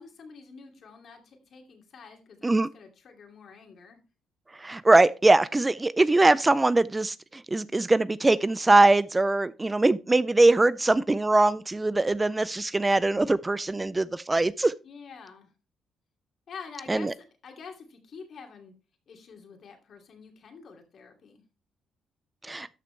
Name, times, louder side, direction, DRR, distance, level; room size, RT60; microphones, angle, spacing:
voice 1, 0.0-4.0 14.8-15.5 16.5-18.7 19.1-21.4, left 5 dB, 60° left, 2.6 m, -47 dB
voice 2, 4.6-14.7 16.9-17.1 22.4-22.7, right 2 dB, 20° right, 0.4 m, -22 dB
13.0 x 6.1 x 3.3 m
cardioid pair, 90°, 0 cm